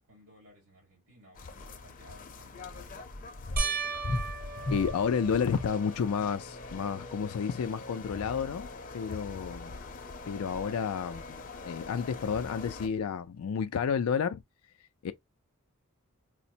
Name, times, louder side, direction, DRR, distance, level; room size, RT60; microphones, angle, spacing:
voice 1, 0.0-3.3, left 1 dB, 70° right, 2.4 m, -59 dB
sound 1, 1.4-12.9, left 2 dB, 40° left, 0.6 m, -41 dB
sound 2, 3.6-6.2 6.8-7.3 7.7-7.8 11.0-11.1, right 3 dB, 45° right, 0.7 m, -36 dB
voice 2, 4.7-8.7 8.9-9.7 10.3-11.4 11.6-14.4 15.0-15.1, left 6 dB, 80° left, 0.4 m, -31 dB
5.0 x 2.0 x 2.7 m
head